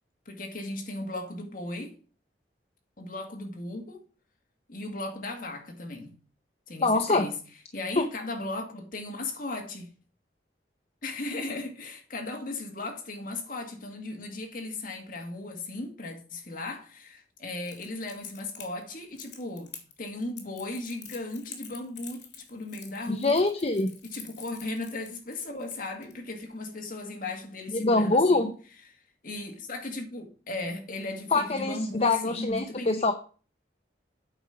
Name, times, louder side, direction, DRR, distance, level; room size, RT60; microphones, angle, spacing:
voice 1, 0.3-2.0 3.0-4.0 4.7-6.2 6.7-7.4 7.7-9.9 11.0-23.4 24.1-28.5 28.9-33.1, left 2 dB, 50° left, 1.9 m, -36 dB
voice 2, 6.8-7.3 8.0-8.1 23.1-23.9 27.7-28.5 31.3-33.1, left 3 dB, 35° left, 0.7 m, -24 dB
Crackle, 17.7-26.1, left 8 dB, 80° left, 2.1 m, -47 dB
8.8 x 5.1 x 5.8 m
head